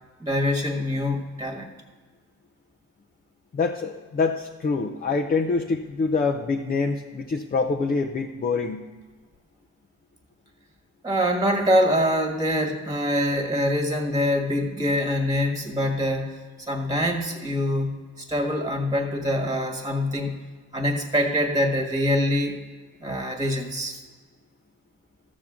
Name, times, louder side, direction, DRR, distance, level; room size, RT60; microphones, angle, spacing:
voice 1, 0.2-1.7 11.0-16.3 16.7-20.3 20.7-22.6 23.0-24.0, equal, 10° right, 3 dB, 1.5 m, -24 dB
voice 2, 3.5-8.9, left 4 dB, 30° left, 2 dB, 0.6 m, -25 dB
13.0 x 7.3 x 3.6 m, 1.4 s
cardioid pair, 90°, 30 cm